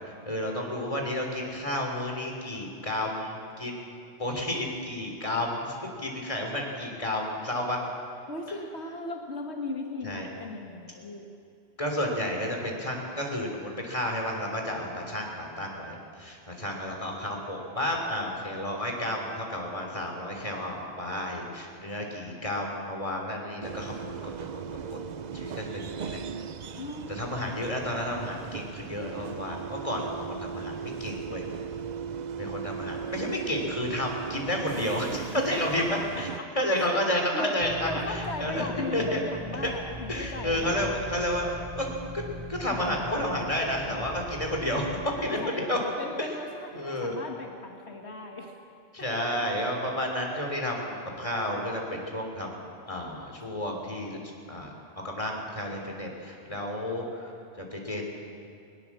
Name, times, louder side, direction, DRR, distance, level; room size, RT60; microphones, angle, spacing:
voice 1, 0.2-3.9 4.2-7.8 10.0-10.3 11.8-24.3 24.9-25.0 25.3-26.2 27.1-31.4 32.4-35.8 36.2-36.3 36.5-38.7 38.9-39.2 39.6-39.7 40.1-41.9 42.1-42.2 42.5-44.9 45.2-45.4 45.7-45.8 46.2-46.3 46.7-47.1 48.9-54.2 54.5-54.7 55.0-57.3 57.6-58.1, left 1 dB, 30° left, 1 dB, 3.4 m, -31 dB
voice 2, 8.3-11.3 26.8-27.7 35.4-40.9 45.2-45.7 46.0-48.6 49.0-49.2, left 2 dB, 80° left, 2 dB, 1.8 m, -37 dB
sound 1, 23.6-36.4, right 7 dB, 50° right, 0.6 m, -38 dB
sound 2, 37.6-45.3, equal, 15° right, 0.9 m, -40 dB
20.0 x 19.5 x 7.4 m, 2.5 s
omnidirectional pair, 1.1 m